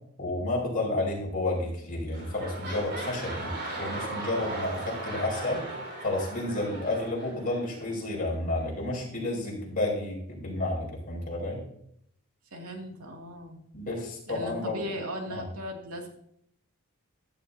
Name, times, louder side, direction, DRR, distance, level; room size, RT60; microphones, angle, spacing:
voice 1, 0.2-5.7 6.0-11.6 13.7-14.8 15.3-15.5, left 2 dB, 40° left, -2 dB, 5.7 m, -31 dB
sound 1, 1.5-1.8 2.1-7.9 8.6-8.7, right 2 dB, 50° right, 3.9 m, -38 dB
voice 2, 12.5-13.6 14.3-16.1, equal, 80° right, 1 dB, 2.6 m, -37 dB
14.5 x 13.0 x 2.8 m, 0.70 s
head